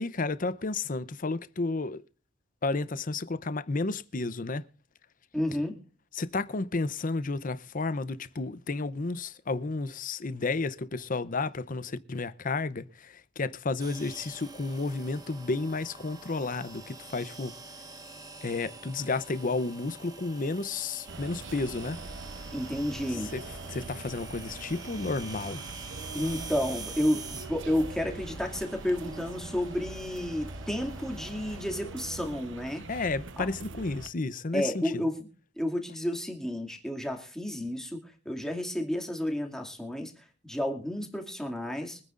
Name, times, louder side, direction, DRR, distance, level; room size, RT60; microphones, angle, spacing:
voice 1, 0.0-2.0 2.6-4.6 6.1-17.5 18.4-22.0 23.3-23.4 23.7-25.6 32.9-35.0, left 3 dB, 45° left, 0.7 m, -32 dB
voice 2, 5.3-5.8 22.5-23.3 26.1-32.8 33.4-33.5 34.5-35.3 35.6-40.1 40.4-42.0, left 1 dB, 5° left, 2.4 m, -31 dB
sound 1, 13.8-31.6, right 3 dB, 20° right, 1.7 m, -46 dB
sound 2, 21.1-34.1, right 3 dB, 75° right, 1.1 m, -43 dB
24.5 x 9.4 x 2.5 m
head